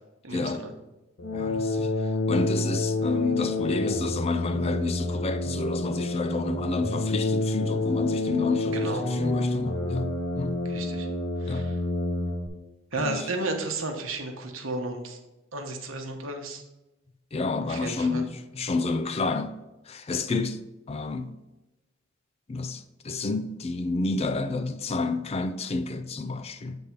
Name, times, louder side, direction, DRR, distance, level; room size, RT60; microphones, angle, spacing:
voice 1, 0.2-0.7 8.7-9.0 10.7-11.1 11.4-11.8 12.9-15.2 15.5-16.6 17.6-18.2, right 2 dB, 70° right, 1.1 m, -33 dB
sound 1, 1.2-12.5, left 2 dB, 65° left, 1.1 m, -28 dB
voice 2, 1.3-1.9 2.3-10.1 10.4-10.6 11.5-11.6 13.0-13.2 17.3-19.5 19.9-20.6 20.9-21.3 22.5-22.8 23.0-26.8, left 3 dB, 30° left, 0.4 m, -29 dB
8.1 x 3.5 x 5.7 m
head